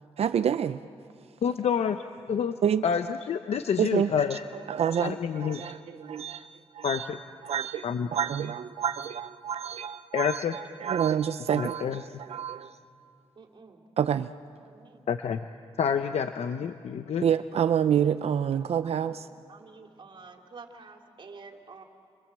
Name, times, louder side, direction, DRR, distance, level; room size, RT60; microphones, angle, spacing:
voice 1, 0.2-0.8 2.6-2.8 3.8-6.5 6.7-7.1 7.4-7.8 8.1-12.8 14.0-14.3 17.2-19.3, right 8 dB, 70° right, 11 dB, 0.6 m, -28 dB
voice 2, 1.4-2.0 2.3-2.5 2.8-4.4 5.0-5.6 6.8-7.2 7.8-8.1 10.1-10.5 11.6-12.0 15.1-15.4 15.8-17.2, left 7 dB, 75° left, 8 dB, 0.8 m, -28 dB
voice 3, 13.4-13.8 14.6-15.0 18.6-19.0 19.5-21.8, right 4 dB, 50° right, 3 dB, 2.9 m, -49 dB
29.5 x 25.0 x 7.7 m, 2.4 s
cardioid pair, 95°, 11 cm